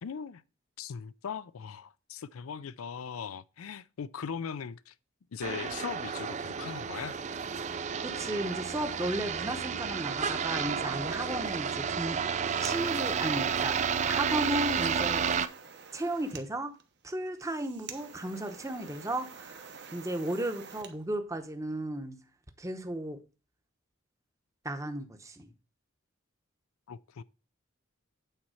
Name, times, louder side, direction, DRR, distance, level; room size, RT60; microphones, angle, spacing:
voice 1, 0.0-0.4 0.8-4.9 5.3-7.2 26.9-27.2, left 6 dB, 90° left, 0.4 m, -39 dB
sound 1, 5.4-15.5, right 6 dB, 35° right, 0.4 m, -31 dB
voice 2, 8.0-12.2 12.6-13.8 14.0-15.2 15.9-16.7 17.0-19.6 19.9-22.2 22.6-23.2 24.6-25.5, right 1 dB, 15° right, 0.8 m, -34 dB
sound 2, 12.1-20.9, right 6 dB, 55° right, 1.0 m, -48 dB
9.0 x 4.2 x 6.3 m
head